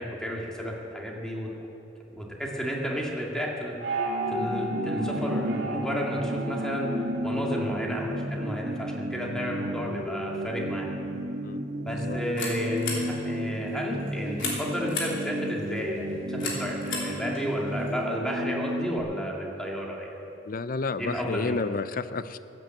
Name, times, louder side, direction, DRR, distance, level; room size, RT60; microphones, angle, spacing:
voice 1, 0.0-1.7 2.1-3.8 4.3-6.9 7.2-10.9 11.8-20.2 21.0-21.6, equal, 5° left, -2 dB, 2.1 m, -32 dB
sound 1, 3.8-8.4, right 1 dB, 75° right, 2.3 m, -33 dB
sound 2, 4.2-19.0, equal, 60° right, 1.6 m, -33 dB
sound 3, 11.9-18.0, left 4 dB, 80° left, 3.3 m, -38 dB
voice 2, 11.9-12.2 20.5-22.4, left 3 dB, 45° left, 13 dB, 0.5 m, -31 dB
14.5 x 9.2 x 7.8 m, 3.0 s
head